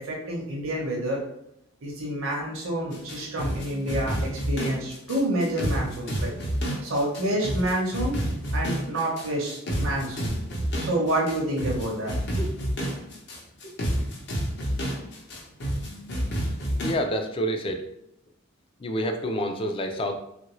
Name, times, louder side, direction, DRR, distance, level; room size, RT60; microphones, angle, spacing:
voice 1, 0.1-1.2 1.8-6.3 6.8-8.2 8.5-10.4 10.8-12.5, right 1 dB, 75° right, -2 dB, 0.7 m, -28 dB
sound 1, 2.9-16.9, equal, 55° left, 0.7 m, -29 dB
voice 2, 16.8-17.8 18.8-20.2, equal, 25° left, 5 dB, 0.3 m, -28 dB
3.0 x 2.5 x 3.0 m, 0.79 s
head